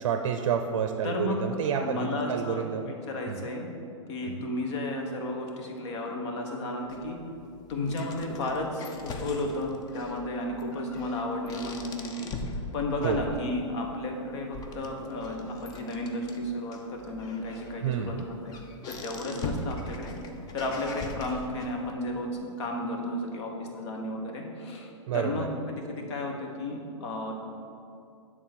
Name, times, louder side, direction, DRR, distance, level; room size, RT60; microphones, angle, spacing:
voice 1, 0.0-2.8 3.3-3.5 4.2-4.5 13.0-13.2 17.8-18.3 25.1-25.5, right 8 dB, 60° right, 6 dB, 0.5 m, -29 dB
voice 2, 1.0-1.5 1.8-2.7 3.1-3.7 4.1-7.2 7.7-12.3 12.7-18.2 18.4-18.6 18.9-20.2 20.5-22.3 22.6-24.9 25.1-27.3, left 1 dB, 60° left, 2 dB, 1.3 m, -33 dB
sound 1, 6.9-21.9, left 2 dB, 25° left, 0.6 m, -41 dB
7.9 x 3.8 x 6.3 m, 2.6 s
hypercardioid pair, 130°, 17 cm